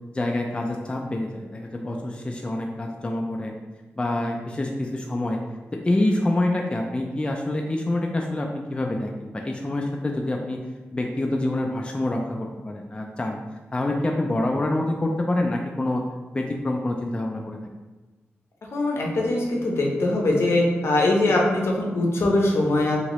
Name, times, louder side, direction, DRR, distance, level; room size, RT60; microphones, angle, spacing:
voice 1, 0.1-3.5 4.0-5.4 5.8-10.6 10.9-13.4 13.7-16.0 16.3-17.6, left 1 dB, 25° left, 1 dB, 0.3 m, -26 dB
voice 2, 18.7-23.0, left 2 dB, 70° left, -1 dB, 0.6 m, -22 dB
2.9 x 2.8 x 3.0 m, 1.2 s
cardioid pair, 70°, 5 cm